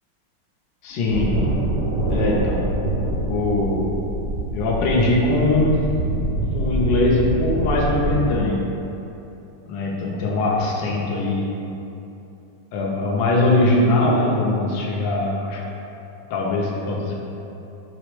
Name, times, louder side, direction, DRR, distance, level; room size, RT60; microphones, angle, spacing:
voice 1, 0.8-1.5 2.1-2.7 3.3-4.0 4.5-5.9 6.5-8.7 9.7-11.6 12.7-15.6 16.3-17.1, left 2 dB, 70° left, -3 dB, 1.2 m, -21 dB
sound 1, 1.1-8.4, right 1 dB, 65° right, 1.0 m, -25 dB
5.0 x 2.0 x 4.5 m, 2.9 s
omnidirectional pair, 2.4 m